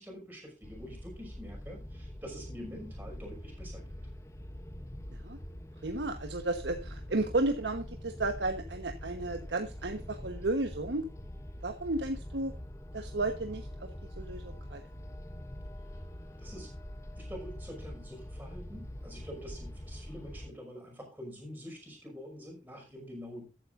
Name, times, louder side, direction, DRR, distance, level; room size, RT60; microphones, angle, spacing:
voice 1, 0.0-3.9 16.4-16.7 17.2-23.5, equal, 10° right, 0 dB, 5.6 m, -46 dB
sound 1, 0.6-20.5, left 1 dB, 15° left, 0.9 m, -44 dB
voice 2, 5.8-11.0 11.6-12.5 12.9-13.9 14.2-14.8, right 2 dB, 80° right, 6 dB, 1.2 m, -33 dB
14.0 x 10.0 x 2.6 m, 0.29 s
head